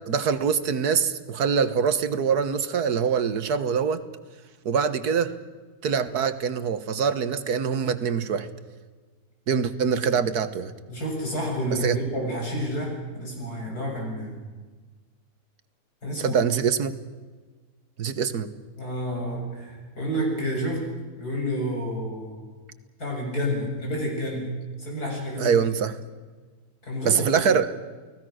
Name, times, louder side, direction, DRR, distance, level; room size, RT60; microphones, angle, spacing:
voice 1, 0.1-4.0 4.7-5.3 5.8-8.5 9.5-10.7 11.8-12.0 16.2-16.9 18.0-18.5 25.4-26.0 27.0-27.7, right 6 dB, 80° right, 12 dB, 1.8 m, -24 dB
voice 2, 10.9-14.4 16.0-16.4 18.8-20.8 21.2-22.5 23.0-24.5 24.8-25.6 26.8-27.5, equal, 75° left, -1 dB, 8.1 m, -30 dB
30.0 x 18.5 x 6.4 m, 1.4 s
omnidirectional pair, 1.7 m